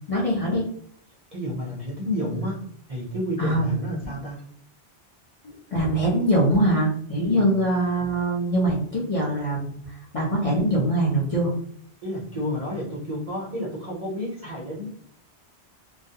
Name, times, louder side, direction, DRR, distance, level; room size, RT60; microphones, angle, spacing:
voice 1, 0.1-0.7 3.4-3.7 5.4-9.8 10.1-11.5, right 1 dB, 40° left, -6 dB, 0.5 m, -23 dB
voice 2, 1.3-2.6 2.9-4.4 7.3-7.5 12.0-14.9, equal, 45° right, -5 dB, 0.5 m, -30 dB
sound 1, 4.0-4.4 6.5-6.8, right 1 dB, 70° left, 1.0 m, -40 dB
2.3 x 2.1 x 2.7 m, 0.65 s
omnidirectional pair, 1.2 m